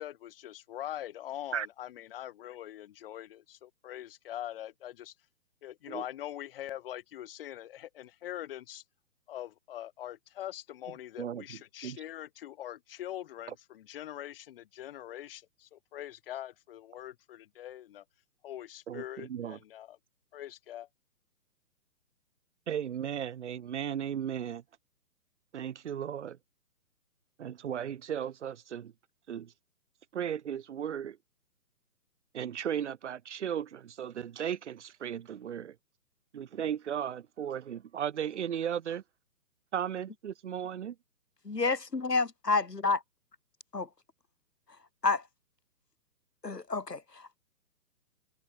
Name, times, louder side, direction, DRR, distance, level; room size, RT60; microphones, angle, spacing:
voice 1, 0.0-5.1 5.6-8.8 9.3-18.0 18.4-20.0 20.3-20.9, left 12 dB, 35° left, 3.0 m, -43 dB
voice 2, 11.2-12.0 18.9-19.6 22.7-24.6 25.5-26.4 27.4-28.9 29.3-29.5 30.1-31.2 32.3-35.7 36.3-39.0 39.7-40.9, right 9 dB, 45° right, 2.8 m, -36 dB
voice 3, 41.4-43.0 43.7-43.9 45.0-45.2 46.4-47.4, left 4 dB, 80° left, 2.7 m, -29 dB
figure-of-eight pair, 135°, 48 cm